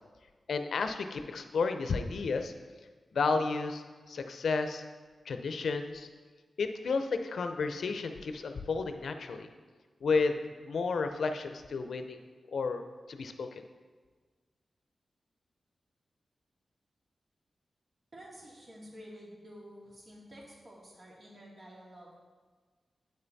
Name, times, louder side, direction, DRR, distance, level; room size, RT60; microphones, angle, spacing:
voice 1, 0.5-2.5 3.1-4.8 5.3-6.1 6.6-9.5 10.0-10.4 10.6-12.2 12.5-12.8 13.1-13.5, left 4 dB, 80° left, 7 dB, 0.6 m, -32 dB
voice 2, 18.1-22.2, equal, 55° right, -4 dB, 2.3 m, -50 dB
8.8 x 5.7 x 4.0 m, 1.4 s
cardioid pair, 50°, 0 cm